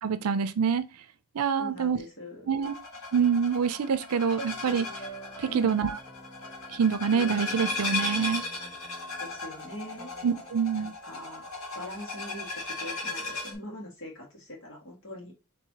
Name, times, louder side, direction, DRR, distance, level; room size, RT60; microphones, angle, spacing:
voice 1, 0.0-0.8 1.3-2.0 2.5-2.8 3.1-4.9 5.4-6.0 6.7-8.4 10.2-10.9, right 6 dB, 85° right, 0.5 m, -26 dB
voice 2, 1.6-2.5 5.5-5.8 9.2-10.1 10.8-11.5 11.7-15.4, equal, 55° left, 1.8 m, -42 dB
sound 1, 2.6-13.5, left 3 dB, 80° left, 1.6 m, -36 dB
sound 2, 4.4-10.5, equal, 15° left, 0.8 m, -47 dB
4.6 x 3.3 x 2.8 m
head